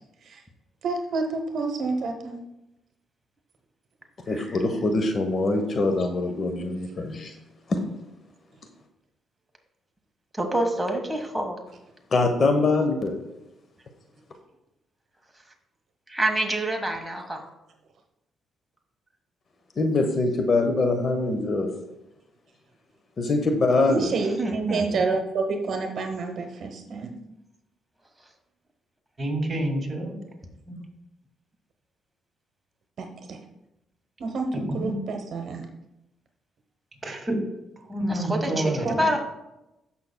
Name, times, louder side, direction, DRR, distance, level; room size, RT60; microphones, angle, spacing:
voice 1, 0.8-2.4 23.9-27.1 33.0-33.4 34.2-35.7 38.8-39.0, right 3 dB, 60° right, 4 dB, 1.0 m, -28 dB
voice 2, 4.3-7.3 7.7-7.8 12.1-13.2 19.8-21.7 23.2-24.1, left 3 dB, 45° left, 5 dB, 1.0 m, -23 dB
voice 3, 10.3-11.6 16.1-17.5 24.1-25.1 38.1-39.2, right 1 dB, 5° right, 2 dB, 1.4 m, -27 dB
voice 4, 29.2-30.1 30.7-30.8 34.5-35.0 37.0-37.4 37.9-39.2, right 1 dB, 30° right, 1 dB, 2.2 m, -28 dB
14.5 x 5.7 x 2.3 m, 0.93 s
cardioid pair, 90°, 0 cm